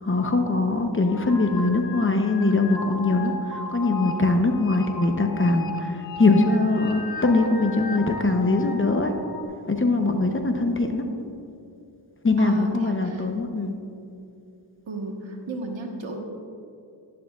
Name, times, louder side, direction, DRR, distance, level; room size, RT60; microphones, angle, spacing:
voice 1, 0.0-9.1 9.7-11.1 12.2-13.7, left 2 dB, 25° left, 4 dB, 0.8 m, -22 dB
sound 1, 1.0-9.4, left 3 dB, 45° left, 1.1 m, -36 dB
voice 2, 12.4-13.3 14.9-16.3, right 2 dB, 65° right, 2 dB, 1.4 m, -34 dB
11.5 x 11.0 x 2.4 m, 2.6 s
cardioid pair, 75°, 48 cm